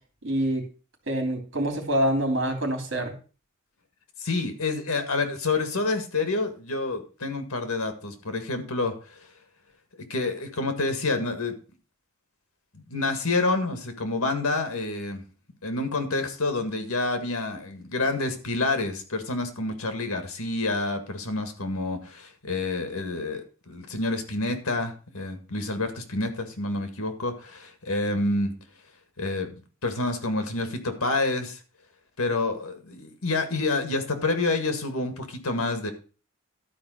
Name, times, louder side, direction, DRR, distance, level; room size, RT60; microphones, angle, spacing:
voice 1, 0.2-0.7 1.1-3.2, right 1 dB, 55° right, 3 dB, 3.1 m, -26 dB
voice 2, 4.2-9.3 10.1-11.5 12.7-15.2 15.6-28.5 29.2-31.6 32.2-35.9, left 3 dB, 90° left, 7 dB, 1.9 m, -28 dB
12.0 x 4.7 x 6.4 m, 0.38 s
head